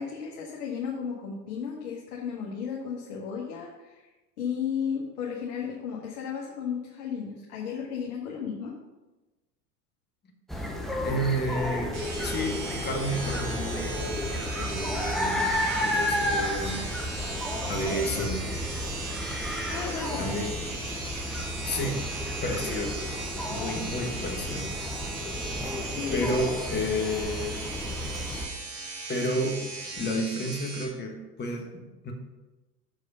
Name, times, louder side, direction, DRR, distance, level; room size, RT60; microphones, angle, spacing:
voice 1, 0.0-4.0 4.4-8.7 19.7-20.3 26.0-26.5, left 7 dB, 60° left, -2 dB, 1.4 m, -34 dB
sound 1, 10.5-28.5, left 1 dB, ahead, 0.6 m, -32 dB
voice 2, 11.0-12.0 12.2-14.0 14.5-16.9 17.7-18.5 20.2-20.6 21.6-23.0 23.5-24.7 26.1-27.6 29.1-29.6 30.0-32.1, equal, 20° left, 2 dB, 1.3 m, -31 dB
sound 2, 11.9-30.9, right 3 dB, 55° right, 2.1 m, -38 dB
6.6 x 4.8 x 5.5 m, 1.1 s
hypercardioid pair, 90°, 49 cm